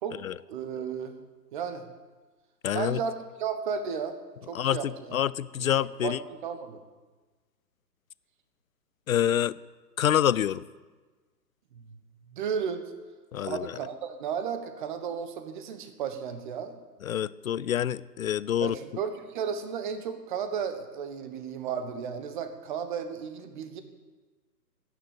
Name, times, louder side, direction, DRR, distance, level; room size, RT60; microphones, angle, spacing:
voice 1, 0.5-1.2 1.5-1.9 2.7-4.2 4.5-5.2 5.6-5.7 6.0-6.8 11.7-11.9 12.3-12.8 13.4-16.8 18.6-23.8, right 7 dB, 30° right, 8 dB, 1.3 m, -34 dB
voice 2, 2.6-3.0 4.5-6.2 9.1-9.6 10.0-10.6 13.3-13.7 17.0-18.8, left 10 dB, 55° left, 19 dB, 0.6 m, -27 dB
14.0 x 9.5 x 8.8 m, 1.3 s
hypercardioid pair, 145°, 50 cm